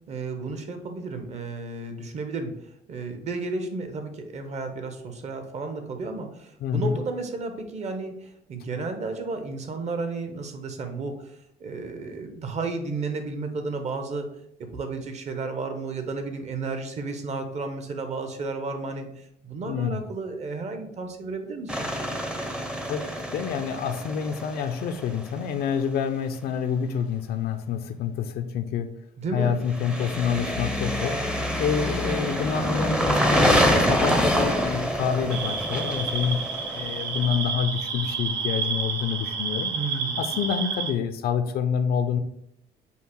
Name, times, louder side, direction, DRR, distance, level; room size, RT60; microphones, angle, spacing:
voice 1, 0.1-14.3 14.6-21.9 29.2-29.6 39.7-40.2, right 3 dB, 40° right, 6 dB, 0.8 m, -33 dB
voice 2, 6.6-7.0 19.7-20.0 22.9-28.9 29.3-36.4 36.7-39.7 40.2-42.2, left 7 dB, 65° left, 7 dB, 0.4 m, -27 dB
sound 1, 21.7-25.5 29.7-37.4, equal, 5° right, 0.5 m, -26 dB
sound 2, 35.3-40.9, right 5 dB, 90° right, 0.7 m, -30 dB
5.4 x 2.0 x 4.4 m, 0.75 s
cardioid pair, 110°, 17 cm